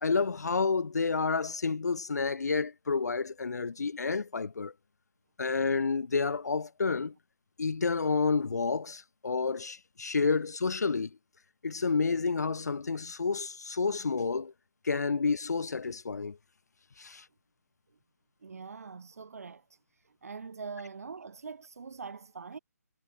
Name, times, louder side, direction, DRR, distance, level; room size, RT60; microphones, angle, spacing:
voice 1, 0.0-4.7 5.4-7.1 7.6-11.2 11.6-14.5 14.8-16.4 17.0-17.2, left 4 dB, 75° left, 0.6 m, -30 dB
voice 2, 18.4-19.8 20.0-22.6, right 5 dB, 60° right, 3.3 m, -43 dB
figure-of-eight pair, 145°, 9 cm